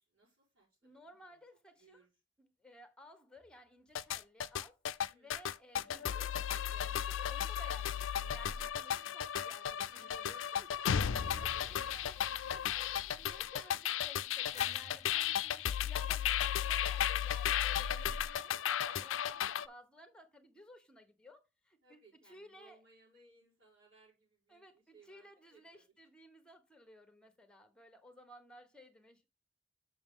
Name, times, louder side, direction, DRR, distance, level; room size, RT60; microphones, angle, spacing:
voice 1, 0.0-1.4 1.8-2.1 5.1-5.4 9.9-10.7 11.6-13.0 13.8-14.0 21.8-25.8, right 1 dB, 90° right, 4.8 m, -63 dB
voice 2, 0.8-2.1 2.4-4.8 5.1-6.4 6.7-12.1 12.5-22.8 24.5-29.2, left 1 dB, 5° left, 1.1 m, -57 dB
sound 1, 3.9-19.7, left 9 dB, 90° left, 0.4 m, -35 dB
sound 2, 14.5-17.2, left 7 dB, 35° left, 0.5 m, -52 dB
7.0 x 6.2 x 3.7 m
head